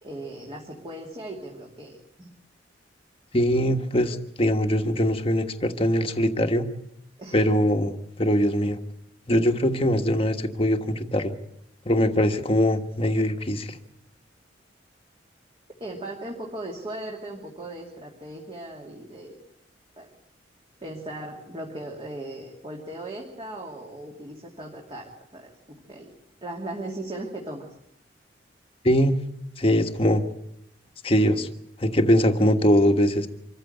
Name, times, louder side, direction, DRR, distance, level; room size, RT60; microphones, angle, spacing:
voice 1, 0.0-2.3 7.2-7.4 15.8-19.4 20.0-20.1 20.8-25.5 25.9-26.1 26.4-27.6, right 1 dB, 30° right, -1 dB, 2.7 m, -37 dB
voice 2, 3.3-6.7 7.3-8.8 9.3-11.3 11.8-13.8 28.8-29.2 29.6-30.2 31.0-31.5 31.8-33.3, equal, 30° left, 6 dB, 1.5 m, -22 dB
26.0 x 14.5 x 8.0 m, 0.79 s
head